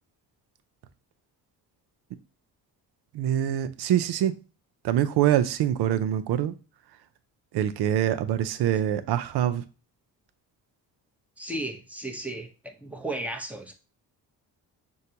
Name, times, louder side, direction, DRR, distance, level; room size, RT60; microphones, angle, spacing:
voice 1, 3.1-4.4 4.8-6.5 7.5-9.6, right 11 dB, 75° right, 0.6 m, -24 dB
voice 2, 11.4-13.7, right 1 dB, 5° right, 0.8 m, -35 dB
6.4 x 2.3 x 2.8 m
cardioid pair, 85°, 40 cm